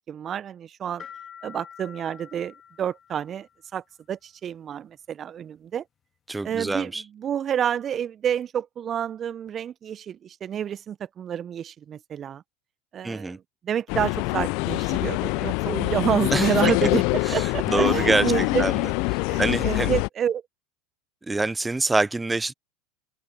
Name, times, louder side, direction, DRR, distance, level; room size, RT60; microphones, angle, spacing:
voice 1, 0.1-1.1 1.4-5.8 6.4-12.4 12.9-17.0 17.3-18.7 19.3-20.4, right 9 dB, 35° right, 1.1 m, -29 dB
sound 1, 1.0-3.6, left 8 dB, 30° left, 2.4 m, -46 dB
voice 2, 6.3-7.0 13.0-13.4 16.3-16.5 16.8-16.9 17.2-18.8 19.1-19.9 21.3-22.5, right 2 dB, 10° right, 0.8 m, -26 dB
sound 2, 13.9-20.1, left 29 dB, 60° left, 0.6 m, -24 dB
open air
hypercardioid pair, 80°, 0 cm